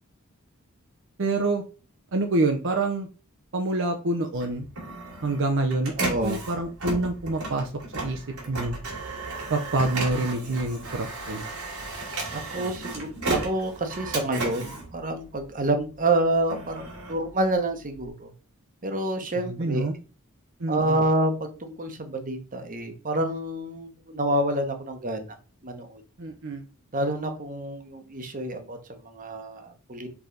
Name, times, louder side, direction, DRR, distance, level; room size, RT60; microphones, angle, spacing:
voice 1, 1.2-1.6 2.1-3.1 3.5-4.7 5.2-8.8 9.5-11.5 19.5-19.9 20.6-21.0 26.2-26.6, right 2 dB, 60° right, 4 dB, 0.7 m, -27 dB
Printer, 4.4-15.8 16.2-18.1, right 2 dB, 80° right, 2.5 m, -34 dB
voice 2, 6.0-6.4 12.3-18.3 18.8-19.9 20.7-25.3 25.6-26.0 26.9-30.1, right 1 dB, 40° right, 6 dB, 1.0 m, -28 dB
4.8 x 3.9 x 5.0 m, 0.35 s
head